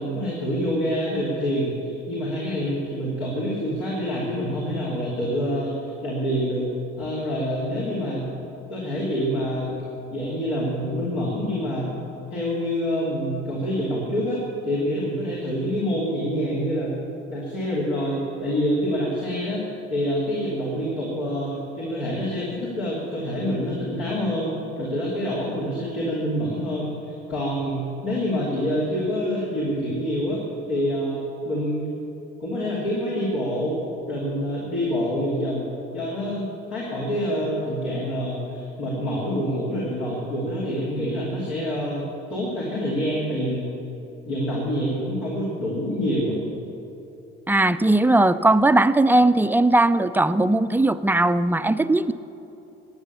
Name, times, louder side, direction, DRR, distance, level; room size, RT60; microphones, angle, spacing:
voice 1, 0.0-6.7 7.0-8.3 8.7-9.7 10.1-11.9 12.3-16.9 17.3-19.6 19.9-30.4 30.7-31.9 32.4-33.8 34.1-43.7 44.2-46.4, equal, 80° left, -7 dB, 3.2 m, -26 dB
voice 2, 47.5-52.1, right 2 dB, 5° right, 13 dB, 0.4 m, -18 dB
15.0 x 10.5 x 7.0 m, 2.8 s
hypercardioid pair, 60°, 31 cm